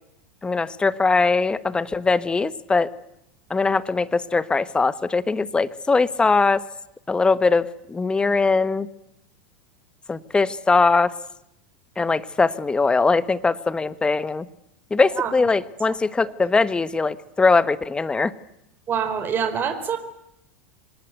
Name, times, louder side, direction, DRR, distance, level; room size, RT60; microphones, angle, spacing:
voice 1, 0.4-2.9 3.5-6.6 7.1-8.9 10.1-11.1 12.0-14.5 14.9-18.3, left 4 dB, 15° left, 16 dB, 1.3 m, -21 dB
voice 2, 18.9-20.0, right 7 dB, 30° right, 8 dB, 4.3 m, -25 dB
25.5 x 20.0 x 9.2 m, 0.81 s
hypercardioid pair, 110°, 7 cm